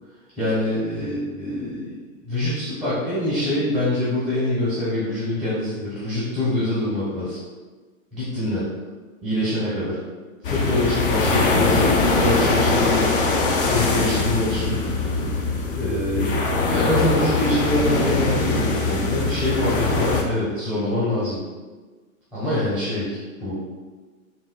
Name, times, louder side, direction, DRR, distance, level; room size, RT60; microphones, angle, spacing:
voice 1, 0.4-1.9 2.3-7.4 8.1-8.7 9.2-10.0 10.4-14.8 15.8-21.4 22.3-23.5, left 1 dB, ahead, -11 dB, 0.8 m, -25 dB
sound 1, 10.4-20.2, left 3 dB, 40° left, 0.4 m, -22 dB
3.5 x 2.3 x 2.2 m, 1.3 s
figure-of-eight pair, 115°, 41 cm